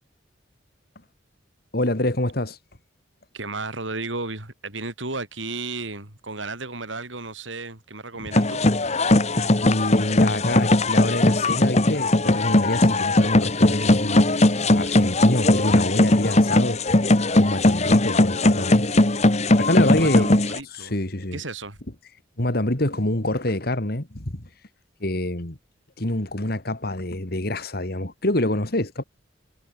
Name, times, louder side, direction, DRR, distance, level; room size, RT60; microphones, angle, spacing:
voice 1, 1.7-2.6 9.6-14.3 14.7-16.8 17.4-18.8 19.6-20.3 20.7-21.4 22.4-24.5 25.0-25.6 26.0-29.0, left 1 dB, 55° left, 2.8 m, -26 dB
voice 2, 3.3-8.6 19.9-20.9 21.3-21.8, right 3 dB, 90° right, 7.6 m, -33 dB
sound 1, 8.3-20.6, left 1 dB, 35° left, 1.6 m, -19 dB
head